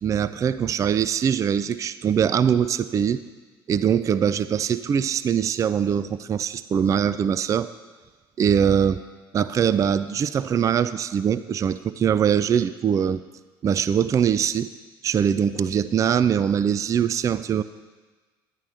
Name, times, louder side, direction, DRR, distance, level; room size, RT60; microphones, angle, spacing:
voice 1, 0.0-3.2 3.7-7.7 8.4-9.0 9.3-13.2 13.6-14.7 15.0-17.6, right 8 dB, 25° right, 14 dB, 0.3 m, -22 dB
11.0 x 10.5 x 3.4 m, 1.3 s
figure-of-eight pair, 60°, 13 cm